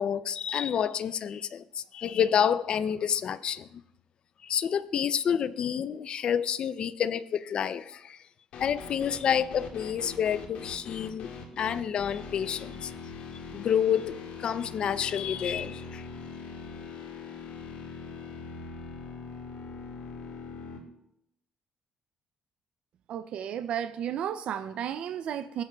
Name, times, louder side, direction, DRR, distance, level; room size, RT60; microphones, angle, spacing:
voice 1, 0.0-3.8 4.4-8.2 8.6-11.3 11.6-12.9 13.5-16.1, left 8 dB, 45° left, 14 dB, 0.4 m, -29 dB
sound 1, 8.5-20.8, left 5 dB, 75° left, 1.7 m, -42 dB
voice 2, 23.1-25.6, right 9 dB, 60° right, 9 dB, 0.4 m, -33 dB
16.0 x 8.0 x 2.3 m, 0.79 s
cardioid pair, 150°, 2 cm